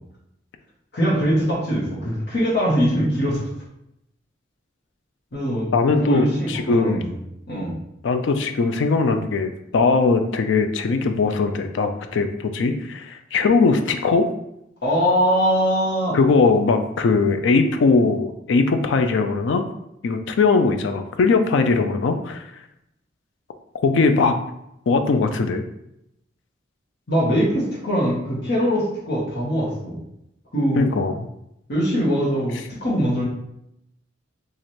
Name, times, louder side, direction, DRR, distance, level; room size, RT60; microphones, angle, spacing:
voice 1, 0.9-3.5 5.3-5.7 6.0-7.2 7.5-7.8 14.8-16.2 27.1-30.0 30.5-31.0 31.7-33.2, equal, 55° left, -6 dB, 1.0 m, -22 dB
voice 2, 5.7-7.0 8.0-14.3 16.1-19.7 20.0-22.5 23.8-24.4 24.9-25.6 30.8-31.3, left 4 dB, 70° left, 7 dB, 0.4 m, -20 dB
3.1 x 2.5 x 4.1 m, 0.81 s
head